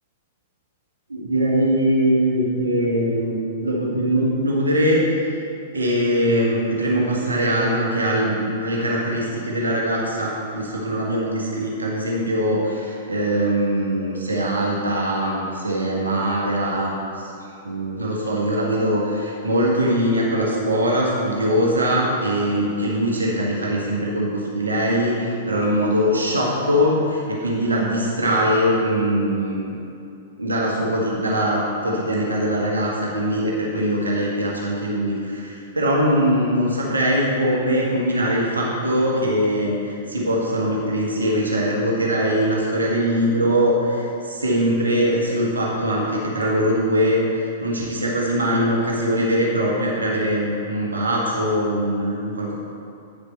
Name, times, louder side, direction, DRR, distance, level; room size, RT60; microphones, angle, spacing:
voice 1, 1.1-5.0 5.7-17.3 17.6-29.7 30.4-52.5, equal, 75° right, -3 dB, 1.6 m, -22 dB
9.2 x 6.8 x 4.4 m, 2.7 s
figure-of-eight pair, 105°, 0 cm